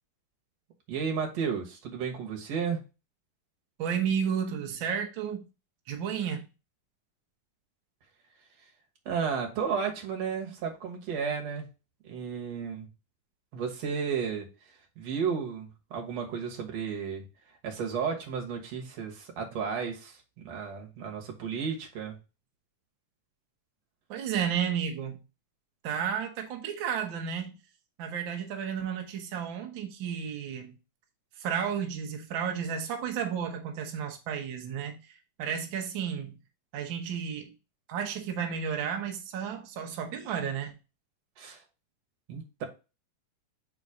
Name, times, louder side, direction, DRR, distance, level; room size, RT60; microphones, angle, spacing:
voice 1, 0.9-2.8 9.1-11.7 12.0-12.9 13.5-14.5 15.0-17.3 17.6-22.2 41.4-41.6 42.3-42.7, right 6 dB, 60° right, 2.2 m, -33 dB
voice 2, 3.8-5.5 5.9-6.5 24.1-25.2 25.8-27.5 28.0-30.8 31.4-36.4 36.7-37.5 37.9-40.8, right 7 dB, 80° right, 1.0 m, -32 dB
5.0 x 4.1 x 4.8 m
omnidirectional pair, 3.6 m